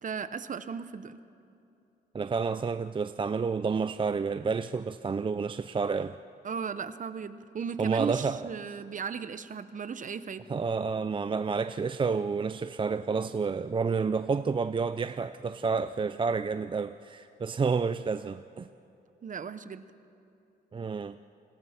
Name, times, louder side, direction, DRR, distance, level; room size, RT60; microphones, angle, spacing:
voice 1, 0.0-1.2 6.4-10.5 19.2-19.8, right 6 dB, 45° right, 0.9 m, -36 dB
voice 2, 2.1-6.2 7.8-8.5 10.5-18.7 20.7-21.2, right 5 dB, 25° right, 0.5 m, -30 dB
28.0 x 20.5 x 5.9 m
cardioid pair, 90°, 18 cm